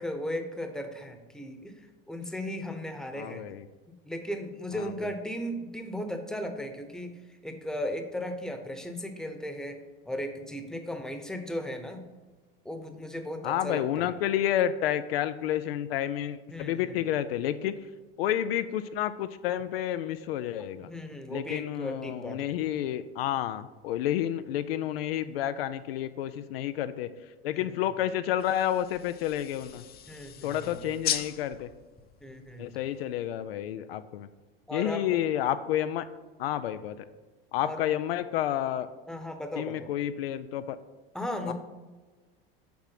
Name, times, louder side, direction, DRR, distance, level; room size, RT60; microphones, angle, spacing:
voice 1, 0.0-3.4 3.9-9.8 10.0-12.1 12.6-14.2 16.5-17.0 20.8-22.5 27.5-27.7 30.1-30.9 32.2-32.7 34.7-35.1 37.6-37.9 39.1-39.9 41.1-41.5, left 1 dB, ahead, 6 dB, 0.9 m, -36 dB
voice 2, 3.2-3.6 4.8-4.9 13.4-17.7 18.2-20.9 21.3-27.1 27.4-29.8 30.4-31.7 32.6-34.3 34.7-36.0 36.4-37.0 37.5-38.9 39.6-40.8 41.5-41.6, left 11 dB, 90° left, 11 dB, 0.5 m, -30 dB
sound 1, 28.4-33.2, left 10 dB, 35° left, 0.6 m, -38 dB
7.0 x 4.9 x 5.8 m, 1.3 s
supercardioid pair, 100°, 29 cm